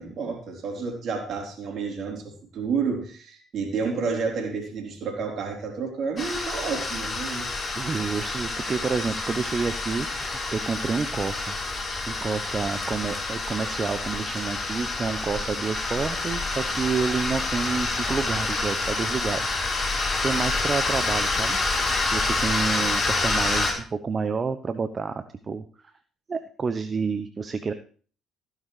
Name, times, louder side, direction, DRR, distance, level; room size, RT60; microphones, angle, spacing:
voice 1, 0.0-7.5, right 5 dB, 60° right, 1 dB, 3.9 m, -30 dB
sound 1, 6.2-23.7, left 3 dB, 40° left, 4.4 m, -28 dB
voice 2, 7.8-11.6 12.1-19.6 20.2-21.6 22.1-25.6 26.3-27.7, right 5 dB, 40° right, 9 dB, 0.8 m, -29 dB
15.5 x 10.5 x 3.3 m, 0.42 s
hypercardioid pair, 50°, 0 cm